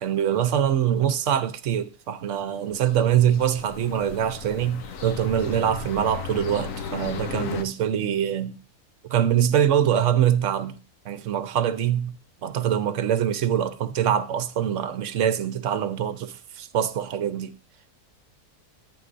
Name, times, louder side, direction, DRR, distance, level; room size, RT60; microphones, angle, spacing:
voice 1, 0.0-8.6 9.0-12.2 12.4-17.5, right 9 dB, 60° right, 0.9 m, -24 dB
sound 1, 2.7-7.6, left 6 dB, 65° left, 1.2 m, -35 dB
11.0 x 9.1 x 2.5 m
omnidirectional pair, 1.6 m